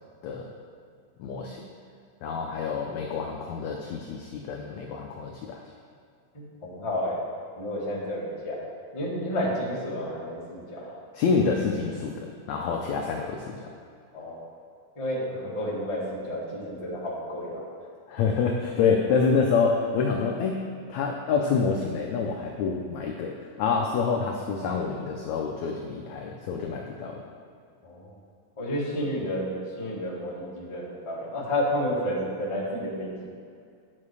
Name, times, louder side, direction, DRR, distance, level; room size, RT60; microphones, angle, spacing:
voice 1, 1.2-1.6 2.2-5.6 11.1-13.7 18.1-20.6 20.9-27.2, left 5 dB, 85° left, 1 dB, 1.6 m, -27 dB
voice 2, 6.3-7.2 7.6-8.6 8.9-10.9 14.1-14.4 14.9-17.6 27.8-28.1 28.6-29.5 29.8-33.3, left 1 dB, 20° left, -6 dB, 0.8 m, -31 dB
9.6 x 7.6 x 4.8 m, 2.3 s
omnidirectional pair, 4.1 m